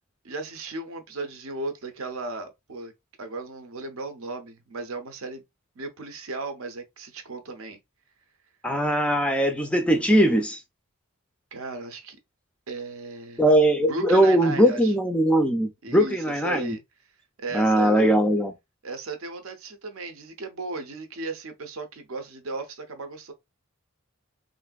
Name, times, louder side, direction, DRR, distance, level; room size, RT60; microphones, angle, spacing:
voice 1, 0.2-2.9 3.2-5.4 5.8-7.8 11.5-12.2 12.7-13.4 13.9-14.9 15.8-16.8 17.4-18.2 18.8-23.3, right 3 dB, 75° right, 0.6 m, -35 dB
voice 2, 8.6-10.6 13.4-16.7 17.5-18.5, right 1 dB, 5° left, 0.3 m, -20 dB
3.2 x 2.5 x 2.3 m
head